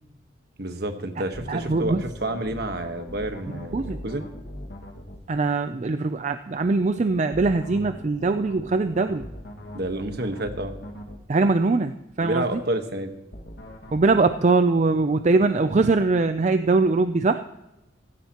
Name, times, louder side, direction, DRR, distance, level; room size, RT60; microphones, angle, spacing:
voice 1, 0.6-4.3 9.7-10.7 12.2-13.1, right 1 dB, 55° right, 6 dB, 1.3 m, -29 dB
sound 1, 1.3-5.2 7.3-11.2 13.3-14.2, equal, 60° left, 1.8 m, -40 dB
voice 2, 1.5-2.0 3.7-4.0 5.3-9.3 11.3-12.4 13.9-17.4, right 3 dB, 40° right, 10 dB, 0.4 m, -22 dB
16.0 x 15.0 x 3.0 m, 0.94 s
head